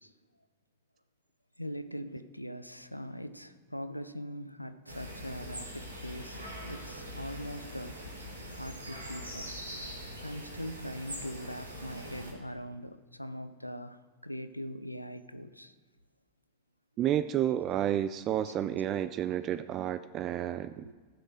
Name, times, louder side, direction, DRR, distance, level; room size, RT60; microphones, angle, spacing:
voice 1, 1.6-8.0 8.5-9.5 10.2-15.7 18.4-18.5 20.8-20.9, equal, 90° left, 11 dB, 0.5 m, -41 dB
sound 1, 4.9-12.3, equal, 80° right, 1.8 m, -43 dB
voice 2, 17.0-20.9, right 11 dB, 35° right, 13 dB, 0.3 m, -31 dB
15.0 x 6.5 x 4.8 m, 1.4 s
figure-of-eight pair, 90°, 0 cm